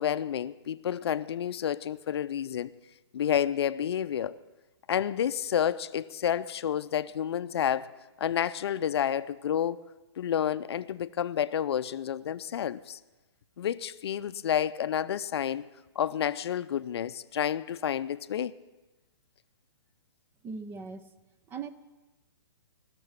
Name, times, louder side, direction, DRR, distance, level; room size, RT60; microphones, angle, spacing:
voice 1, 0.0-2.7 3.1-4.4 4.9-7.9 8.2-9.8 10.2-13.0 13.6-15.7 16.0-18.5, left 9 dB, 65° left, 0.5 m, -30 dB
voice 2, 20.4-21.1 21.5-21.7, right 5 dB, 15° right, 0.5 m, -39 dB
16.5 x 6.8 x 9.5 m
hypercardioid pair, 140°, 14 cm